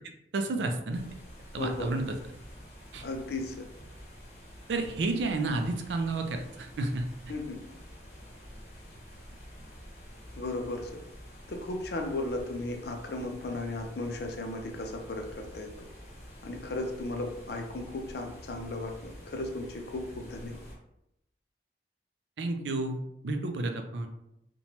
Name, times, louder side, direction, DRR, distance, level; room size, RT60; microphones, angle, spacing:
voice 1, 0.3-1.0 1.5-2.2 2.9-3.0 4.7-7.1 22.4-23.0 23.2-24.1, right 2 dB, 80° right, 6 dB, 0.4 m, -31 dB
sound 1, 0.9-20.8, equal, 35° left, 0.8 m, -48 dB
voice 2, 1.5-1.9 3.0-3.6 7.3-7.6 10.4-10.9 11.5-15.7 16.4-20.6, left 2 dB, 60° left, 3 dB, 0.4 m, -35 dB
2.9 x 2.2 x 2.8 m, 0.84 s
head